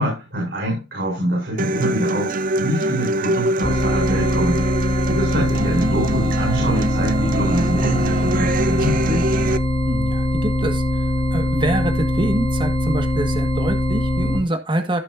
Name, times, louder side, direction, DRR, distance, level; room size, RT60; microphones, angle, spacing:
voice 1, 0.0-4.6 5.1-9.2, equal, 65° right, -1 dB, 6.7 m, -25 dB
Human voice / Acoustic guitar, 1.6-9.6, right 2 dB, 50° right, 0.6 m, -24 dB
sound 1, 3.6-14.4, equal, 30° left, 3.1 m, -21 dB
voice 2, 9.9-10.8 11.3-15.0, right 1 dB, 25° right, 6 dB, 1.6 m, -25 dB
16.0 x 6.5 x 2.6 m, 0.26 s
head